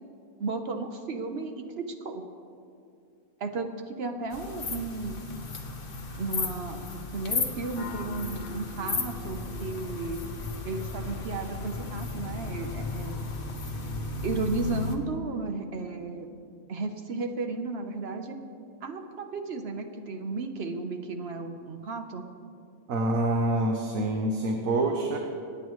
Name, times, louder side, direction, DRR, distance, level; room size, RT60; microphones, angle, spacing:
voice 1, 0.4-2.2 3.4-5.3 6.2-10.2 10.6-13.2 14.2-16.3 16.7-18.4 18.8-22.2, right 3 dB, 55° right, 5 dB, 1.1 m, -34 dB
sound 1, 4.3-15.0, left 3 dB, 45° left, 1.2 m, -34 dB
voice 2, 22.9-25.2, right 1 dB, 80° right, 2 dB, 1.4 m, -26 dB
26.0 x 9.1 x 3.1 m, 2.4 s
omnidirectional pair, 1.4 m